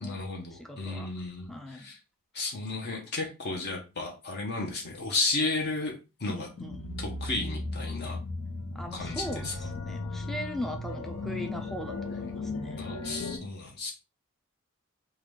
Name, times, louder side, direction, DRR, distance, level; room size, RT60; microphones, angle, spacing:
voice 1, 0.0-2.0 2.3-5.9 6.2-6.5 7.0-8.2 8.9-9.5 12.1-13.9, left 3 dB, 50° left, 0 dB, 0.7 m, -33 dB
voice 2, 0.5-1.1 1.5-1.9 6.3-6.9 8.7-12.8, left 1 dB, ahead, 4 dB, 0.3 m, -39 dB
sound 1, 6.6-13.4, left 2 dB, 85° left, 0.7 m, -36 dB
3.7 x 2.2 x 3.2 m, 0.29 s
head